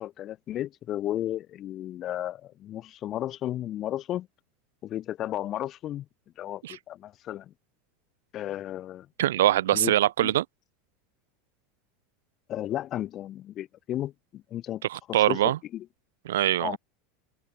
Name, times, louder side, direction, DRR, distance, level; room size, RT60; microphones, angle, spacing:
voice 1, 0.0-4.3 4.8-6.1 6.4-7.5 8.3-9.1 9.7-10.3 12.5-14.8 15.3-15.9 16.6-16.8, left 12 dB, 45° left, 1.6 m, -34 dB
voice 2, 9.2-10.4 14.9-15.6 16.3-16.8, right 13 dB, 75° right, 1.0 m, -23 dB
hypercardioid pair, 90°, 0 cm